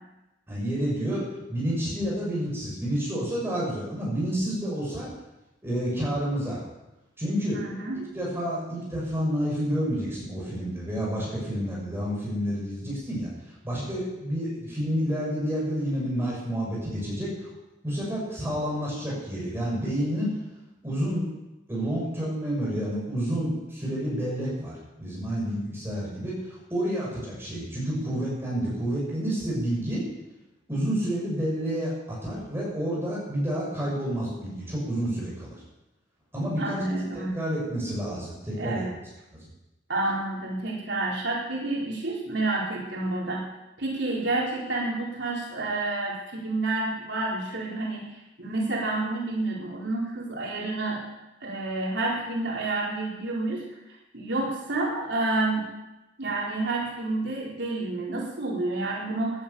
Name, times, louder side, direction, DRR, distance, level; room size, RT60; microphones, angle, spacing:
voice 1, 0.5-1.2 1.5-5.1 5.6-6.6 7.2-7.6 8.1-17.5 17.8-20.3 20.8-21.3 21.7-30.0 30.7-35.6 36.3-36.8 37.3-38.8, equal, 15° right, -5 dB, 6.7 m, -29 dB
voice 2, 7.5-8.1 36.6-37.3 38.5-38.9 39.9-43.4 43.8-51.0 51.4-53.6 54.1-55.7 56.2-59.4, right 2 dB, 65° right, -4 dB, 4.5 m, -29 dB
15.0 x 11.0 x 7.1 m, 0.98 s
head